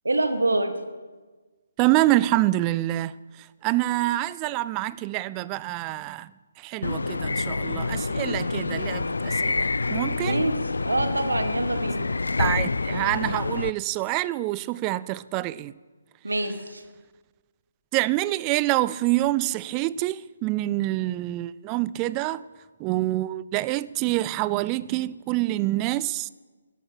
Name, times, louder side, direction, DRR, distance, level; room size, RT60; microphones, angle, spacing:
voice 1, 0.0-0.7 10.2-12.1 16.2-16.8, right 2 dB, 85° right, 1.8 m, -26 dB
voice 2, 1.8-3.1 3.6-6.3 6.6-10.4 12.4-15.7 17.9-22.4 22.8-26.3, right 17 dB, 20° right, 0.3 m, -26 dB
sound 1, 6.8-13.7, left 3 dB, 80° left, 0.4 m, -27 dB
13.5 x 11.0 x 6.3 m
figure-of-eight pair, 145°, 0 cm